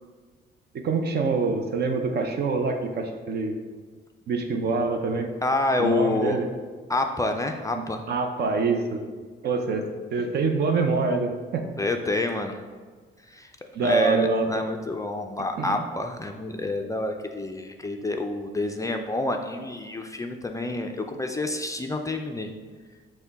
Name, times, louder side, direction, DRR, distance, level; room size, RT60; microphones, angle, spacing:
voice 1, 0.7-3.6 4.3-5.3 5.8-6.5 8.1-9.0 9.4-9.8 10.1-11.6 13.7-14.5 15.6-15.8, right 4 dB, 55° right, 5 dB, 0.6 m, -25 dB
voice 2, 5.4-6.4 6.9-8.0 11.8-12.6 13.3-13.5 13.8-22.5, left 2 dB, 15° left, 4 dB, 0.3 m, -28 dB
5.7 x 2.2 x 4.0 m, 1.5 s
cardioid pair, 90°, 20 cm